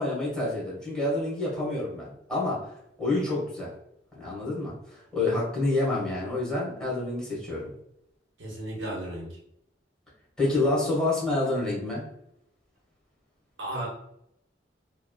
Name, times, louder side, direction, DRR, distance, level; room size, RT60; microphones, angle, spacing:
voice 1, 0.0-2.7 3.0-3.7 4.1-7.7 10.4-12.0, left 2 dB, 5° left, -6 dB, 1.1 m, -28 dB
voice 2, 8.4-9.4 13.6-13.9, right 1 dB, 80° right, -3 dB, 0.9 m, -34 dB
3.3 x 2.1 x 2.2 m, 0.78 s
head